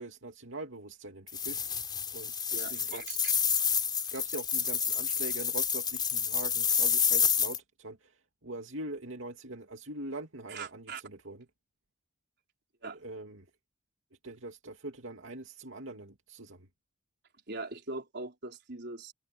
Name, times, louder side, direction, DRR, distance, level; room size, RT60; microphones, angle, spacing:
voice 1, 0.0-1.6 2.1-3.0 4.1-8.1 8.4-11.4 13.0-13.5 14.2-16.7, right 2 dB, 80° right, 2.7 m, -42 dB
sound 1, 1.3-7.6, left 7 dB, 25° left, 3.8 m, -29 dB
voice 2, 2.5-3.3 10.5-11.0 12.8-13.0 17.5-19.1, right 3 dB, 60° right, 4.3 m, -41 dB
head